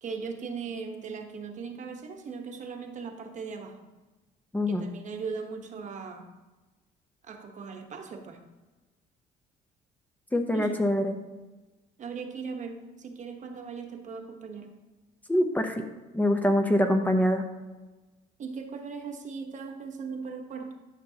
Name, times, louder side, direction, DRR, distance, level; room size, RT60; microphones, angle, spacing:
voice 1, 0.0-3.8 4.7-6.3 7.2-8.4 10.5-10.9 12.0-14.7 18.4-20.7, right 5 dB, 45° right, 4 dB, 1.1 m, -38 dB
voice 2, 4.5-4.9 10.3-11.2 15.3-15.8 16.1-17.4, left 1 dB, 10° left, 4 dB, 0.8 m, -24 dB
11.5 x 5.9 x 2.8 m, 1.2 s
cardioid pair, 110°, 17 cm